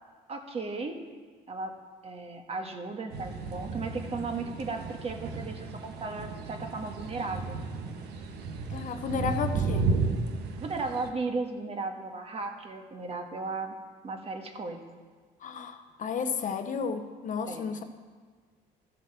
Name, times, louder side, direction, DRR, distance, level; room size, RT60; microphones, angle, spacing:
voice 1, 0.3-1.0 1.5-1.7 2.0-7.6 9.1-9.3 10.6-13.7 14.0-14.8 17.5-17.7, right 3 dB, 35° right, 4 dB, 1.5 m, -35 dB
sound 1, 3.1-11.1, right 4 dB, 75° right, 1.2 m, -33 dB
voice 2, 8.7-9.8 15.4-17.8, left 6 dB, 50° left, 8 dB, 0.9 m, -32 dB
13.5 x 7.5 x 6.8 m, 1.5 s
cardioid pair, 110°, 17 cm